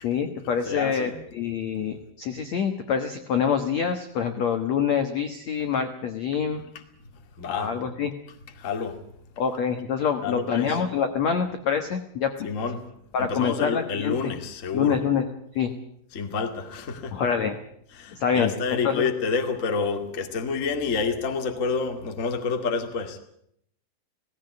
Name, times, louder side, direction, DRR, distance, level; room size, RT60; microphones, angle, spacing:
voice 1, 0.0-6.6 7.5-8.1 9.4-12.5 13.1-14.3 14.7-15.3 15.5-15.7 17.1-17.6 18.1-19.0 19.7-19.8, left 7 dB, 80° left, 7 dB, 1.5 m, -26 dB
voice 2, 0.6-1.1 7.4-7.7 8.6-9.0 10.2-10.8 12.4-12.8 13.2-15.0 16.1-17.2 18.0-23.2, left 5 dB, 40° left, 5 dB, 1.1 m, -28 dB
17.5 x 17.5 x 9.5 m, 0.71 s
omnidirectional pair, 5.3 m